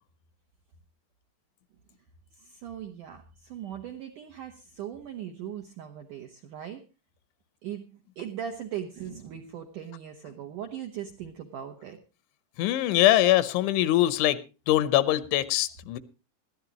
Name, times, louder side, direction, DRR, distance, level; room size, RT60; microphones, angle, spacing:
voice 1, 2.3-6.8 7.6-12.0, right 9 dB, 75° right, 3 dB, 1.9 m, -39 dB
voice 2, 12.6-14.4 14.7-16.0, left 14 dB, 80° left, 15 dB, 3.2 m, -22 dB
20.5 x 14.0 x 3.0 m, 0.30 s
omnidirectional pair, 5.5 m